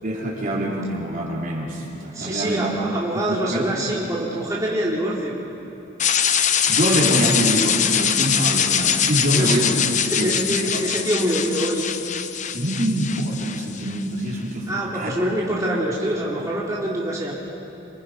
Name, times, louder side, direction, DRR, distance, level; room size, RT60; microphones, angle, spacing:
voice 1, 0.0-2.8 3.1-3.6 6.7-9.8 10.1-10.8 12.5-15.1, right 1 dB, 45° right, -3 dB, 3.9 m, -25 dB
voice 2, 2.1-5.4 9.3-9.7 10.1-11.9 14.7-17.3, right 1 dB, 15° right, -6 dB, 2.7 m, -25 dB
sound 1, 6.0-14.0, left 8 dB, 40° left, 0.8 m, -22 dB
27.5 x 25.0 x 5.2 m, 2.9 s
head